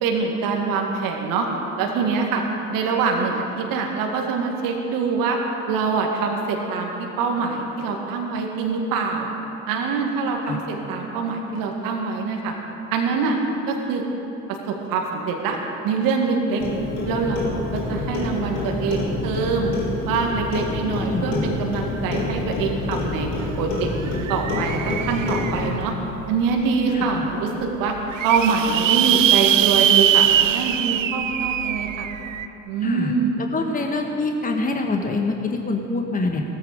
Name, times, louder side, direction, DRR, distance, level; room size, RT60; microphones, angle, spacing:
voice 1, 0.0-1.5 1.8-2.4 2.7-5.4 5.7-9.3 9.7-12.5 12.9-13.4 13.7-14.0 14.7-15.6 15.8-16.6 17.1-19.7 20.1-23.3 23.6-25.9 26.3-27.9 28.2-32.1 32.7-33.4, right 5 dB, 60° right, 1 dB, 2.1 m, -24 dB
voice 2, 10.2-10.6 20.8-21.4 26.9-27.2 32.8-33.1 33.5-36.4, left 3 dB, 20° left, 3 dB, 1.5 m, -25 dB
Clock, 16.6-25.7, left 2 dB, 70° left, 3.2 m, -27 dB
sound 1, 23.4-23.5 23.8-25.9 26.5-26.6 27.0-27.1 27.2-27.3 27.9-32.5, right 10 dB, 85° right, 0.6 m, -21 dB
19.0 x 14.5 x 5.1 m, 2.9 s
figure-of-eight pair, 55°, 38 cm